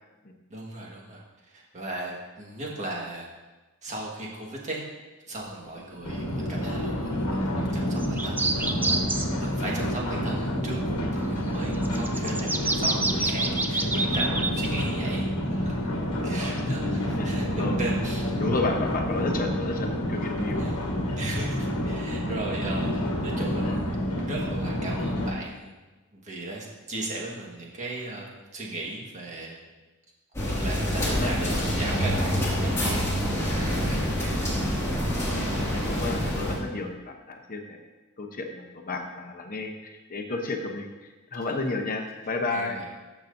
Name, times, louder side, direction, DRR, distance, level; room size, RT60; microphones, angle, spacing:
voice 1, 0.5-1.2 1.5-3.3 3.8-4.8 5.3-15.7 16.2-18.5 20.5-20.8 21.2-22.9 23.2-24.0 24.3-25.7 26.1-29.8 30.5-33.1 33.6-34.4 34.7-35.0 41.5-41.8 42.5-42.8, right 2 dB, 35° right, -3 dB, 1.6 m, -37 dB
sound 1, 6.0-25.3, equal, 75° left, 1.2 m, -28 dB
sound 2, 8.0-9.3 11.7-14.8, right 2 dB, 10° right, 0.3 m, -28 dB
voice 2, 17.2-17.8 18.4-20.7 31.1-31.7 34.0-34.3 35.3-37.8 38.2-42.8, left 3 dB, 40° left, 3 dB, 0.9 m, -32 dB
sound 3, 30.3-36.5, equal, 15° left, 2.1 m, -26 dB
13.5 x 5.9 x 2.7 m, 1.2 s
head